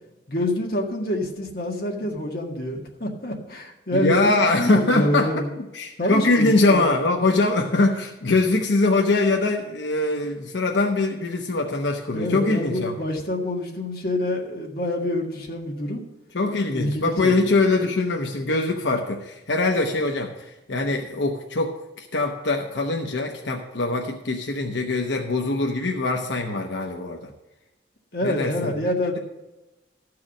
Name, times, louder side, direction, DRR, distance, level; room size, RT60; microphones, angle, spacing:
voice 1, 0.3-4.3 4.6-5.5 6.0-7.0 12.1-16.0 16.7-17.5 28.1-29.2, left 1 dB, 55° left, -1 dB, 1.9 m, -27 dB
voice 2, 3.9-5.3 5.7-12.9 16.3-27.3 28.2-28.7, left 2 dB, 85° left, 2 dB, 1.0 m, -23 dB
13.5 x 4.8 x 7.2 m, 0.99 s
head